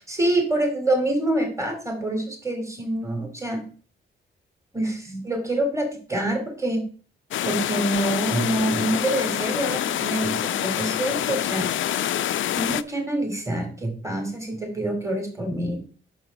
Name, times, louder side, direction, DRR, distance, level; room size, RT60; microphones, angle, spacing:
voice 1, 0.0-3.6 4.7-6.8 7.4-11.7 12.6-15.8, right 1 dB, 15° right, 3 dB, 2.8 m, -26 dB
sound 1, 7.3-12.8, left 11 dB, 65° left, 0.4 m, -26 dB
6.3 x 4.8 x 5.2 m, 0.41 s
cardioid pair, 60°, 21 cm